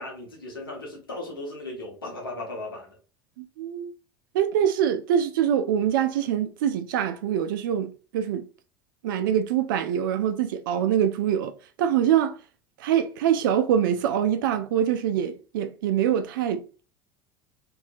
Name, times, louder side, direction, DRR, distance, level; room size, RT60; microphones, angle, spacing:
voice 1, 0.0-3.0, left 2 dB, 90° left, 1.0 m, -36 dB
voice 2, 3.4-3.9 4.3-8.5 9.0-11.5 11.8-12.4 12.8-16.6, right 9 dB, 70° right, 0.4 m, -24 dB
2.7 x 2.7 x 2.3 m
hypercardioid pair, 75°, 11 cm